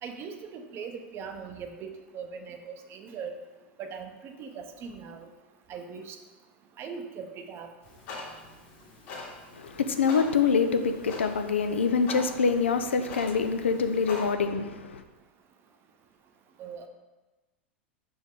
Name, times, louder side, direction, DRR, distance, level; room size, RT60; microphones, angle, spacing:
voice 1, 0.0-3.4 3.8-5.3 5.7-6.2 6.8-7.7 16.6-16.9, right 6 dB, 40° right, 0.7 m, -40 dB
Clock, 7.8-14.3, left 3 dB, 55° left, 1.7 m, -43 dB
voice 2, 9.5-15.0, left 5 dB, 80° left, 0.5 m, -25 dB
5.9 x 4.3 x 3.7 m
figure-of-eight pair, 90°, 6 cm